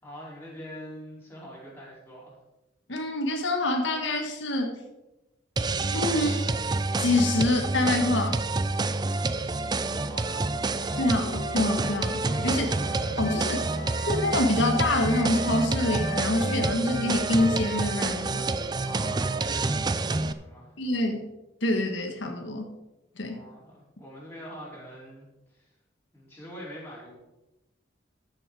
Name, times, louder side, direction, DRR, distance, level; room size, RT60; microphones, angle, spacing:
voice 1, 0.0-2.4 8.9-10.7 12.6-13.1 18.8-20.8 23.2-25.7 26.1-27.1, equal, 15° left, -6 dB, 4.5 m, -44 dB
voice 2, 2.9-4.8 5.9-6.5 7.0-8.4 11.0-12.8 13.2-13.7 14.1-18.5 20.8-21.3 21.6-22.7 23.2-23.4, left 2 dB, 85° left, 4 dB, 1.5 m, -26 dB
sound 1, 5.6-20.3, right 3 dB, 20° right, 0.4 m, -28 dB
Wind instrument woodwind instrument, 10.7-14.5 14.8-18.9, left 2 dB, 55° left, 2.0 m, -39 dB
13.5 x 7.5 x 4.9 m, 0.97 s
head